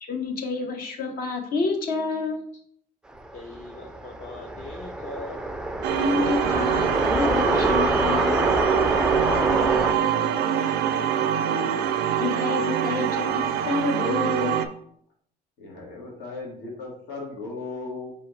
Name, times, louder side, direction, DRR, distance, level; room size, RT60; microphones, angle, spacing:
voice 1, 0.0-2.4 6.0-8.4 10.1-10.2 12.2-14.6, left 3 dB, 60° left, 3 dB, 0.9 m, -28 dB
sound 1, 3.2-9.9, right 1 dB, 5° right, 0.3 m, -26 dB
voice 2, 3.3-5.5 8.3-8.4 9.2-11.8, left 2 dB, 45° left, 3 dB, 0.6 m, -42 dB
sound 2, 5.8-14.7, right 9 dB, 90° right, 0.4 m, -24 dB
voice 3, 15.6-18.1, left 3 dB, 80° left, -2 dB, 1.6 m, -36 dB
4.2 x 3.5 x 3.1 m, 0.64 s
cardioid pair, 110°, 17 cm